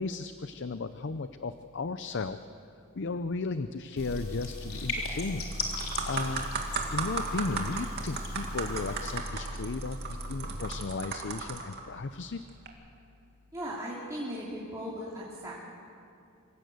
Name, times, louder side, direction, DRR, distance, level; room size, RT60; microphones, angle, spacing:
voice 1, 0.0-2.4 3.0-5.4 6.1-6.5 6.9-12.4, left 3 dB, 55° left, 11 dB, 0.6 m, -35 dB
sound 1, 4.0-9.2, left 4 dB, 75° left, 3.8 m, -40 dB
Engine, 4.0-10.9, equal, 85° right, 3.5 m, -40 dB
sound 2, 4.8-5.0 5.4-11.8 12.5-12.7, right 4 dB, 50° right, 2.4 m, -35 dB
voice 2, 13.5-15.6, equal, 15° right, -7 dB, 3.1 m, -37 dB
26.0 x 16.5 x 8.0 m, 2.6 s
head